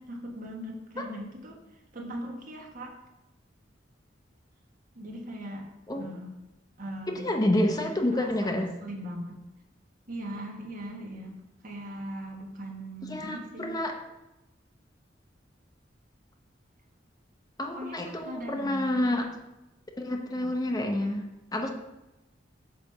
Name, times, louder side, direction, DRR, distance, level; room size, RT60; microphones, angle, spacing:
voice 1, 0.0-1.6 1.9-3.0 4.9-6.4 6.8-7.3 8.1-8.5 8.8-9.4 10.1-13.8 17.7-19.1 20.4-20.5, equal, 50° right, 0 dB, 1.4 m, -40 dB
voice 2, 7.1-8.7 13.0-13.9 17.6-19.2 20.0-21.7, left 1 dB, 20° left, 3 dB, 0.8 m, -28 dB
8.5 x 3.3 x 6.5 m, 0.98 s
head